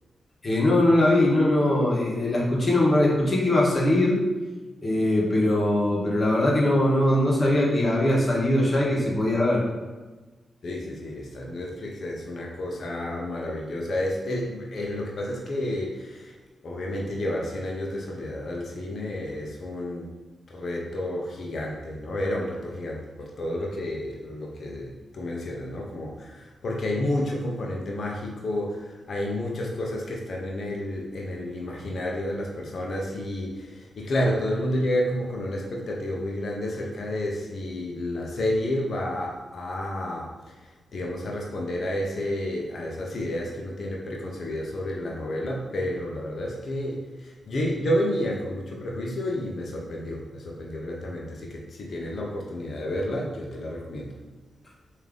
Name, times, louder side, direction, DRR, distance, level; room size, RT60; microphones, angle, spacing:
voice 1, 0.4-4.2 4.8-9.6, left 1 dB, 45° left, -4 dB, 1.1 m, -21 dB
voice 2, 10.6-16.3 16.6-20.1 20.5-40.3 40.6-54.1, left 1 dB, 65° left, -1 dB, 0.6 m, -30 dB
3.3 x 2.7 x 3.7 m, 1.3 s
cardioid pair, 60°, 0 cm